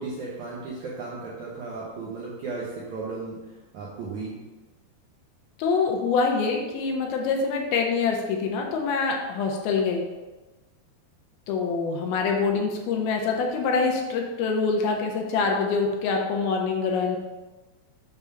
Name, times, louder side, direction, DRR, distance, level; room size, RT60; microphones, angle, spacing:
voice 1, 0.0-3.4 3.7-4.4, right 3 dB, 75° right, -6 dB, 1.8 m, -35 dB
voice 2, 5.6-10.0 11.5-17.2, left 4 dB, 75° left, 1 dB, 2.5 m, -25 dB
6.9 x 3.6 x 5.5 m, 1.2 s
omnidirectional pair, 4.7 m